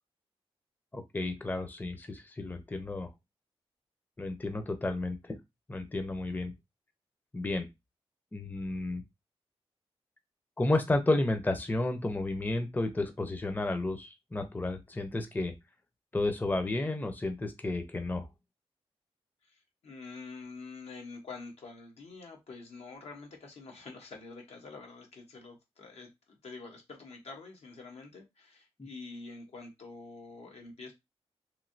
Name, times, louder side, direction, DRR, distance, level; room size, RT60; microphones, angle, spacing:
voice 1, 0.9-3.1 4.2-5.4 5.7-6.5 7.3-7.7 8.3-9.0 10.6-15.5 16.1-18.3 28.8-28.9, left 2 dB, 15° left, 7 dB, 0.5 m, -32 dB
voice 2, 19.4-30.9, left 3 dB, 80° left, 2 dB, 1.0 m, -47 dB
3.0 x 2.6 x 2.6 m, 0.21 s
wide cardioid pair, 85°, 11 cm